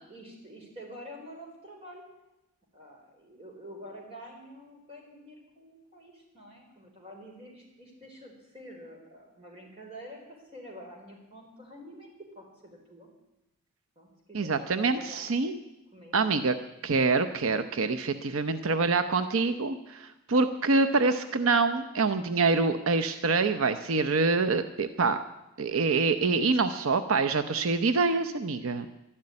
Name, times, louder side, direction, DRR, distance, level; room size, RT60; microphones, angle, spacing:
voice 1, 0.1-2.0 2.7-13.1 14.0-15.2 15.9-16.2, equal, 25° right, 0 dB, 4.2 m, -48 dB
voice 2, 14.3-15.6 16.1-16.5 16.8-25.2 25.6-28.9, right 4 dB, 80° right, 9 dB, 0.7 m, -26 dB
12.0 x 12.0 x 9.7 m, 0.94 s
head